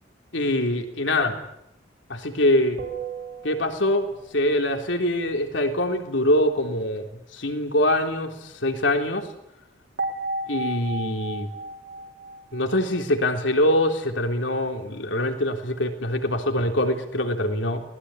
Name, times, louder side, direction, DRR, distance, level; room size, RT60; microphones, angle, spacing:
voice 1, 0.3-1.4 2.1-2.8 3.4-7.1 7.3-9.3 10.5-11.5 12.5-17.8, left 1 dB, 65° left, 5 dB, 3.7 m, -24 dB
sound 1, 2.8-4.3 10.0-13.3, right 2 dB, 60° right, 4.0 m, -34 dB
26.5 x 20.5 x 9.9 m, 0.78 s
head